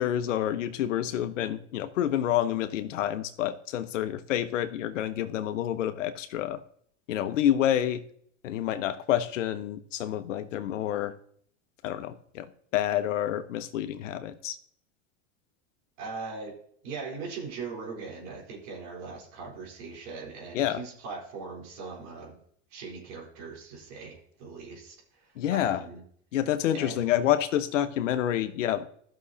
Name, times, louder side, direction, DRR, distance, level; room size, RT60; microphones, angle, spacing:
voice 1, 0.0-6.6 7.1-8.0 8.4-11.1 11.8-14.6 20.5-20.8 25.4-25.8 26.3-28.9, left 11 dB, 90° left, 10 dB, 1.1 m, -28 dB
voice 2, 16.0-16.6 16.8-22.4 22.7-26.0 26.7-27.2, right 4 dB, 75° right, -2 dB, 4.0 m, -40 dB
14.5 x 6.4 x 2.8 m, 0.63 s
supercardioid pair, 110°, 36 cm